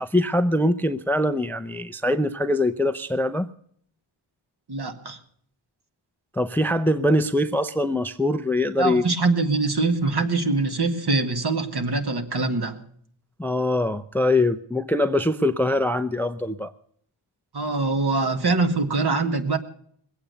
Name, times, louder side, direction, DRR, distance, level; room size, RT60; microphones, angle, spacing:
voice 1, 0.0-3.5 6.3-9.0 13.4-16.7, left 1 dB, 5° left, 13 dB, 0.5 m, -23 dB
voice 2, 4.7-5.2 8.8-12.8 17.5-19.6, right 3 dB, 50° right, 6 dB, 1.9 m, -23 dB
20.5 x 8.5 x 6.9 m, 0.63 s
cardioid pair, 60°, 50 cm